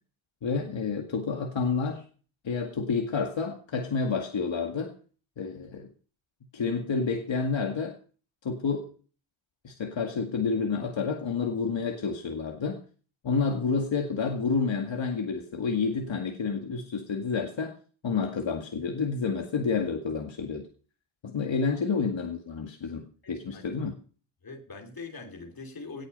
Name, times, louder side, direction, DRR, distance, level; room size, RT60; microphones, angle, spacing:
voice 1, 0.4-2.0 2.4-4.9 5.4-5.9 6.5-8.0 8.4-8.9 9.6-12.8 13.2-17.8 18.0-20.7 21.2-23.9, left 5 dB, 70° left, 3 dB, 2.1 m, -29 dB
voice 2, 23.2-23.7 24.4-26.1, left 3 dB, 50° left, 4 dB, 3.1 m, -43 dB
18.0 x 8.9 x 5.4 m, 0.40 s
wide cardioid pair, 175°, 47 cm